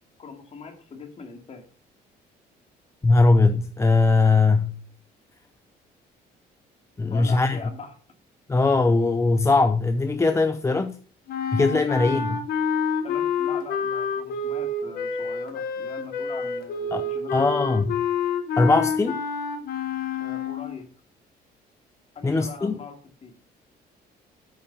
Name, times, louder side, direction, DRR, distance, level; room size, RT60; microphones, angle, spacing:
voice 1, 0.2-1.6 7.1-7.9 13.0-17.7 20.1-20.9 22.1-23.0 23.2-23.3, left 4 dB, 40° left, 2.5 m, -41 dB
voice 2, 3.0-4.7 7.0-7.6 8.5-11.0 11.5-12.4 16.9-17.9 18.6-19.2 22.2-22.8, left 3 dB, 15° left, 0.6 m, -20 dB
sound 1, 11.3-20.8, left 5 dB, 65° left, 1.5 m, -28 dB
9.0 x 5.5 x 5.7 m
cardioid pair, 110°, 17 cm